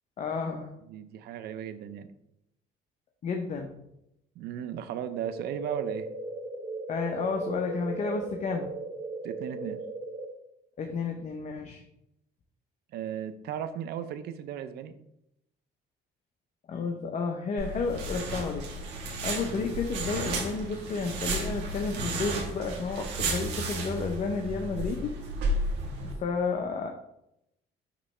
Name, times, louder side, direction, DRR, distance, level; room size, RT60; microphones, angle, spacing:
voice 1, 0.2-0.7 3.2-3.7 6.9-8.7 10.8-11.8 16.7-18.6 19.2-25.1 26.1-26.9, left 4 dB, 45° left, 3 dB, 0.7 m, -31 dB
voice 2, 0.9-2.1 4.4-6.1 9.2-9.8 12.9-14.9, right 9 dB, 70° right, 11 dB, 0.6 m, -36 dB
sound 1, 5.2-10.3, right 3 dB, 40° right, 1.7 m, -37 dB
sound 2, 17.6-26.1, right 2 dB, 90° right, 1.4 m, -33 dB
6.0 x 3.1 x 5.5 m, 0.82 s
cardioid pair, 110°, 17 cm